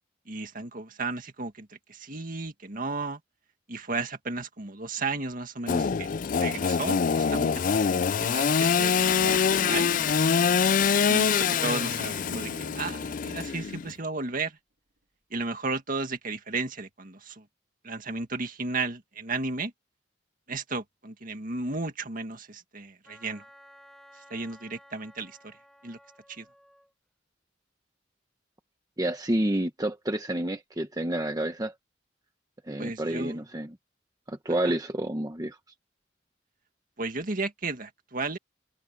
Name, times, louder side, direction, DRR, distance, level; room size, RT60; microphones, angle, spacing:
voice 1, 0.3-3.2 3.7-6.1 6.4-7.9 8.2-9.9 11.1-14.6 15.3-17.4 17.8-19.7 20.5-23.4 24.3-25.5 25.8-26.0 26.3-26.5 32.8-33.4 34.6-34.7 37.0-38.4, right 3 dB, 45° right, 2.0 m, -34 dB
Engine / Sawing, 5.7-13.9, left 6 dB, 45° left, 0.4 m, -25 dB
Bowed string instrument, 8.5-13.3, right 2 dB, 65° right, 2.1 m, -43 dB
Wind instrument woodwind instrument, 23.0-26.9, equal, ahead, 4.0 m, -55 dB
voice 2, 29.0-31.7 32.7-33.8 34.3-35.6, right 1 dB, 20° right, 1.0 m, -29 dB
head